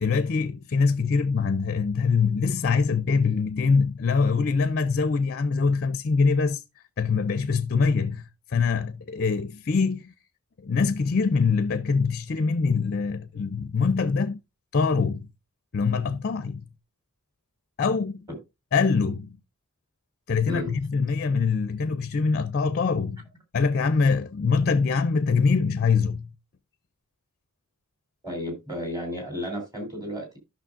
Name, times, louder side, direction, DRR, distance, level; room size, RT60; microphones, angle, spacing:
voice 1, 0.0-6.6 7.0-10.1 10.6-14.4 14.7-15.3 15.7-16.7 17.8-18.3 18.7-19.4 20.3-23.3 23.5-26.3, left 5 dB, 45° left, 0.5 m, -24 dB
voice 2, 28.2-30.4, left 1 dB, 15° right, 3.3 m, -33 dB
13.5 x 6.2 x 2.5 m
head